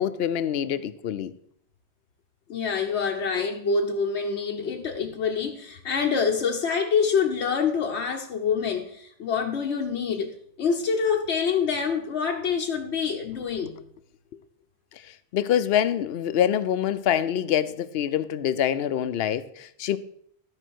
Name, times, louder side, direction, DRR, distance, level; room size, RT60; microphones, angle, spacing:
voice 1, 0.0-1.3 14.9-20.0, left 9 dB, 70° left, 0.8 m, -25 dB
voice 2, 2.5-13.8, left 6 dB, 85° left, 1.1 m, -26 dB
12.0 x 5.0 x 6.3 m
omnidirectional pair, 1.1 m